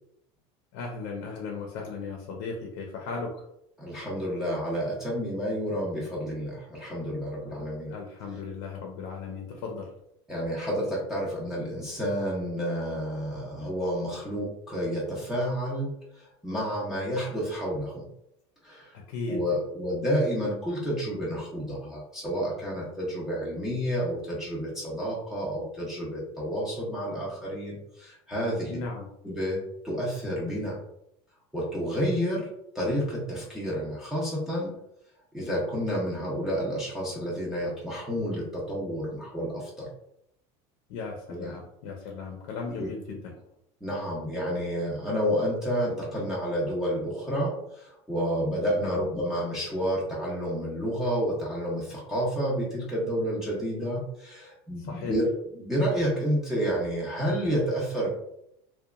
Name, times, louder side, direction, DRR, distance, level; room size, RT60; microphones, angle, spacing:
voice 1, 0.7-3.4 7.9-9.9 18.9-19.4 28.7-29.1 40.9-43.4 48.8-49.0 54.8-55.2, left 4 dB, 75° left, 1 dB, 0.6 m, -36 dB
voice 2, 3.8-7.9 10.3-15.9 16.2-18.1 18.6-18.9 19.3-28.7 29.2-30.8 31.5-32.5 32.7-34.7 35.3-39.9 41.3-41.5 42.7-42.9 43.8-55.3 55.6-58.1, equal, 5° right, -6 dB, 0.5 m, -30 dB
2.8 x 2.2 x 2.3 m, 0.77 s
cardioid pair, 155°, 13 cm